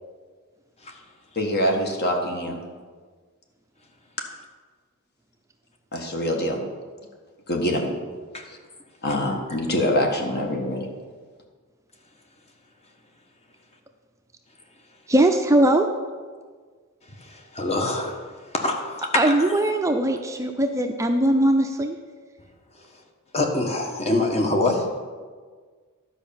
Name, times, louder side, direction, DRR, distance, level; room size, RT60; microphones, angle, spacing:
voice 1, 1.4-2.6 5.9-6.6 7.5-7.9 8.5-8.6 9.0-10.9, equal, 50° left, 2 dB, 1.7 m, -24 dB
voice 2, 15.1-15.9 19.1-22.0, right 1 dB, 15° right, 5 dB, 0.5 m, -20 dB
voice 3, 17.2-18.2 18.5-19.1 19.4-19.5 23.3-25.0, left 2 dB, 30° left, 3 dB, 1.3 m, -25 dB
11.5 x 5.4 x 7.1 m, 1.5 s
head